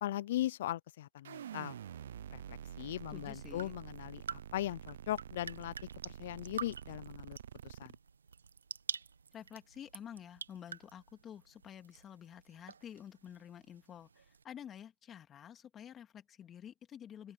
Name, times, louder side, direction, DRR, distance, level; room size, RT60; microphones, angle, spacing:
voice 1, 0.0-1.8 2.3-5.7 6.0-7.4 7.6-7.9, left 14 dB, 55° left, 0.3 m, -39 dB
sound 1, 1.2-8.0, right 10 dB, 70° right, 0.4 m, -48 dB
voice 2, 3.1-3.8 9.3-17.3, left 9 dB, 20° left, 2.0 m, -50 dB
sound 2, 3.2-14.4, right 6 dB, 90° right, 1.2 m, -49 dB
open air
hypercardioid pair, 130°, 0 cm